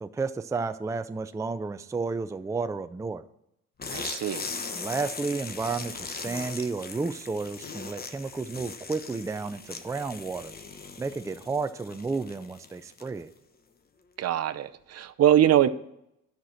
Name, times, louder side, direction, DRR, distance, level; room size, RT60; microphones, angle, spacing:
voice 1, 0.0-3.2 4.7-10.5 11.0-13.3, right 4 dB, 10° right, 10 dB, 0.4 m, -32 dB
sound 1, 3.8-13.3, left 4 dB, 30° left, 0.9 m, -39 dB
voice 2, 3.9-4.5 14.2-15.7, right 11 dB, 55° right, 12 dB, 0.6 m, -23 dB
9.3 x 5.9 x 6.3 m, 0.79 s
cardioid pair, 90°, 30 cm